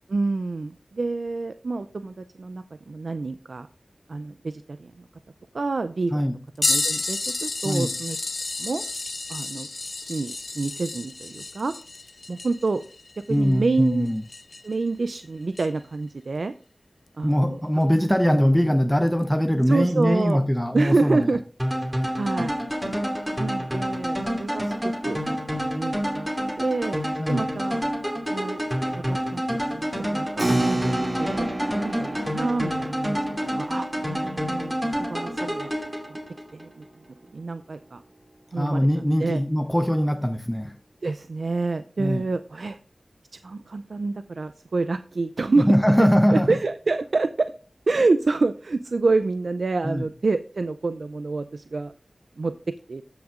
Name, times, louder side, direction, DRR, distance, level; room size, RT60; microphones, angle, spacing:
voice 1, 0.1-3.7 4.1-5.1 5.5-6.2 6.6-8.2 8.6-8.8 9.3-9.7 10.0-11.7 12.3-12.8 13.3-14.1 14.6-16.5 17.2-17.6 19.7-20.4 20.7-21.4 22.2-22.6 23.4-25.2 25.5-26.3 26.6-27.0 27.3-27.8 28.3-28.6 28.9-29.5 29.7-31.5 31.7-34.8 35.1-35.7 36.1-36.2 36.5-36.8 37.3-38.0 38.5-39.4 41.0-42.8 43.4-45.7 46.0-47.5 47.9-51.9 52.4-52.5 52.9-53.0, right 3 dB, 75° right, 0.4 m, -27 dB
sound 1, 6.6-14.8 15.5-15.7 17.9-18.0 19.1-19.2 20.3-20.4, left 3 dB, 65° left, 0.4 m, -31 dB
voice 2, 13.3-14.2 17.2-21.4 27.2-27.5 38.6-40.8 42.0-42.2 45.6-46.5 49.8-50.0, equal, 5° left, 0.6 m, -21 dB
sound 2, 21.6-36.7, equal, 15° right, 2.3 m, -28 dB
Keyboard (musical), 30.4-36.4, right 1 dB, 35° right, 2.3 m, -31 dB
14.5 x 6.1 x 2.5 m
cardioid pair, 40°, 0 cm